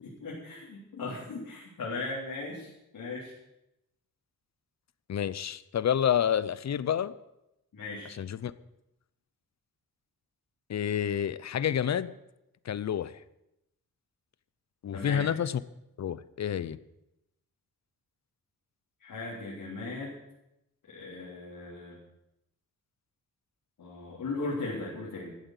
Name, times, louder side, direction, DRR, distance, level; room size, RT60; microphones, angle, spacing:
voice 1, 0.0-3.3 7.7-8.1 14.9-15.3 19.0-20.1 20.9-22.0 23.8-25.4, left 3 dB, 75° left, -5 dB, 3.6 m, -37 dB
voice 2, 5.1-7.1 8.1-8.5 10.7-12.1 12.6-13.2 14.8-15.6 16.0-16.8, left 9 dB, 50° left, 17 dB, 0.6 m, -29 dB
13.5 x 8.0 x 8.0 m, 0.87 s
wide cardioid pair, 120°, 34 cm